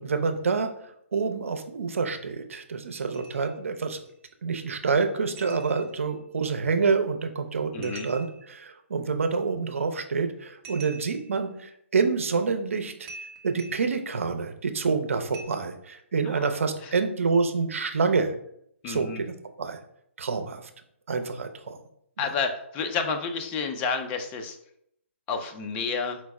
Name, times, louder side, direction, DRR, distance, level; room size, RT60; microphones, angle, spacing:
voice 1, 0.0-4.0 4.4-13.1 13.4-18.4 18.9-19.8 20.2-20.7 21.1-21.8 22.2-22.3, right 4 dB, 80° right, 7 dB, 0.6 m, -27 dB
sound 1, 3.1-3.6 4.1-4.2 5.4-6.2 7.8-8.6 10.6-11.4 12.3-12.5 13.1-14.0 15.3-15.4, right 3 dB, 30° right, 0.8 m, -45 dB
voice 2, 7.7-8.1 16.2-16.5 16.8-16.9 18.8-19.2 22.2-24.6 25.3-26.2, left 5 dB, 20° left, 5 dB, 0.4 m, -30 dB
4.4 x 2.0 x 4.6 m, 0.72 s
hypercardioid pair, 150°, 7 cm